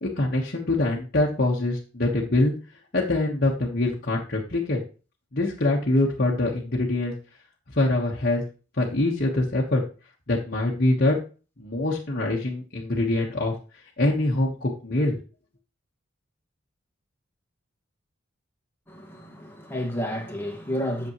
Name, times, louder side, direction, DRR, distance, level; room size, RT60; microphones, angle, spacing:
voice 1, 0.0-2.5 2.9-4.8 5.3-7.1 7.7-8.4 8.8-9.8 10.3-11.2 11.6-13.5 14.0-15.2, left 2 dB, 50° left, 1.4 m, -24 dB
voice 2, 18.9-21.1, equal, 10° left, 1.9 m, -31 dB
8.3 x 7.2 x 3.1 m
head